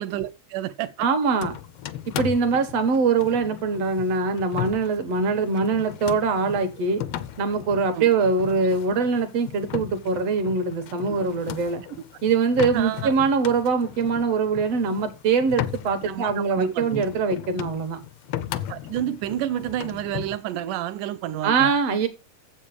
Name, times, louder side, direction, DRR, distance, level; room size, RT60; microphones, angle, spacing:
voice 1, 0.0-1.1 7.9-8.1 11.9-12.0 12.7-13.1 16.0-17.0 18.7-21.7, right 12 dB, 85° right, 2.3 m, -30 dB
voice 2, 1.0-1.6 2.2-7.0 7.4-11.8 12.2-18.0 21.4-22.1, right 4 dB, 60° right, 2.1 m, -23 dB
sound 1, 1.4-20.4, left 11 dB, 85° left, 1.4 m, -36 dB
8.0 x 7.6 x 4.9 m
omnidirectional pair, 3.6 m